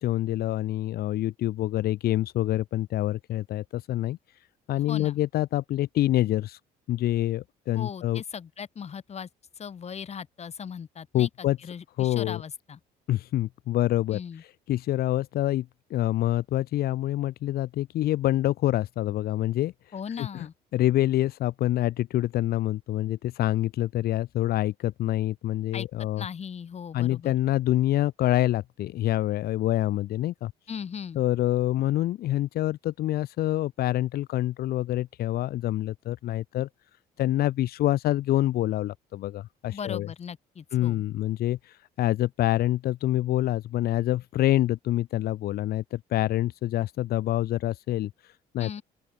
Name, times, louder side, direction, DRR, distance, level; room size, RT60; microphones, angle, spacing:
voice 1, 0.0-6.6 6.9-8.2 11.1-11.6 12.0-12.4 13.1-20.5 20.7-26.3 26.9-30.5 31.1-36.7 37.2-40.1 40.7-48.8, left 14 dB, 65° left, 1.1 m, -26 dB
voice 2, 4.9-5.2 7.7-9.3 9.6-12.8 14.1-14.4 19.9-20.5 25.7-25.9 26.2-27.4 30.7-31.2 39.7-41.0 48.6-48.8, left 7 dB, 40° left, 5.8 m, -38 dB
open air
cardioid pair, 110°, 17 cm